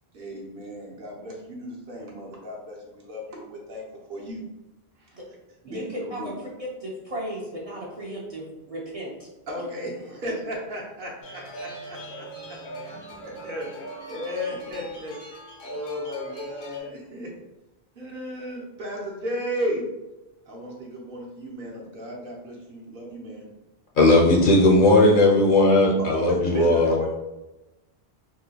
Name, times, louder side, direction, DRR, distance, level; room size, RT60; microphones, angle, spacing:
voice 1, 0.1-3.8 4.1-4.4 5.0-5.2 5.6-6.3 9.5-12.0 12.9-13.0 13.4-13.7 14.1-15.2 15.6-17.4 17.9-19.9 20.5-23.5 26.0-27.1, equal, 60° right, -2 dB, 1.0 m, -34 dB
voice 2, 5.7-6.3 6.6-9.1, right 1 dB, 40° right, -4 dB, 0.6 m, -35 dB
sound 1, 11.2-16.8, right 2 dB, 80° left, 1.0 m, -40 dB
voice 3, 24.0-26.9, left 2 dB, 55° left, -1 dB, 0.7 m, -17 dB
3.7 x 2.2 x 2.8 m, 1.0 s
omnidirectional pair, 1.1 m